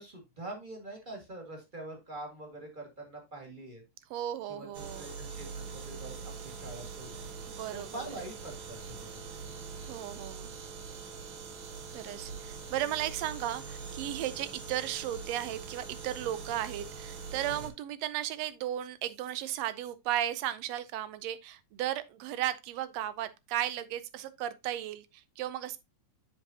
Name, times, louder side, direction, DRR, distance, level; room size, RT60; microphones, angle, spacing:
voice 1, 0.0-3.8 4.5-7.2 7.7-9.2 17.5-17.6, right 2 dB, 20° right, 1.6 m, -44 dB
voice 2, 4.1-5.1 7.5-8.1 9.8-10.5 11.9-25.8, right 12 dB, 75° right, 1.6 m, -35 dB
sound 1, 4.7-17.7, right 5 dB, 60° right, 1.4 m, -43 dB
7.3 x 6.9 x 2.7 m
omnidirectional pair, 3.5 m